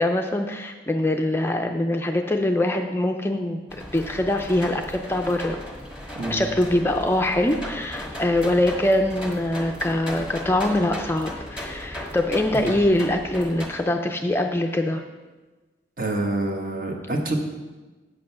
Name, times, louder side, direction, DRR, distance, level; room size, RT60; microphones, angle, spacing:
voice 1, 0.0-3.6 3.9-5.6 6.3-15.0, left 1 dB, 15° left, 4 dB, 0.4 m, -23 dB
sound 1, 3.7-13.7, equal, 5° right, 1.4 m, -36 dB
voice 2, 6.1-6.5 12.5-12.7 16.0-17.4, right 2 dB, 50° right, 2 dB, 1.3 m, -27 dB
8.3 x 7.6 x 5.8 m, 1.2 s
head